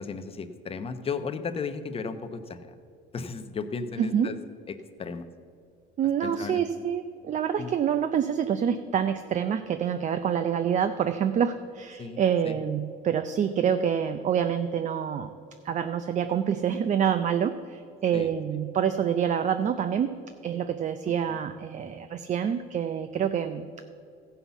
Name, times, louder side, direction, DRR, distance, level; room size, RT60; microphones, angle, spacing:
voice 1, 0.0-2.7 3.1-4.4 4.7-5.3 6.2-6.8 7.6-7.7 12.0-12.6 18.1-18.3, left 5 dB, 25° left, 8 dB, 0.8 m, -35 dB
voice 2, 4.0-4.3 6.0-15.3 15.6-20.1 20.4-23.9, right 8 dB, 35° right, 9 dB, 0.5 m, -27 dB
14.5 x 5.7 x 7.0 m, 2.3 s
cardioid pair, 120°, 21 cm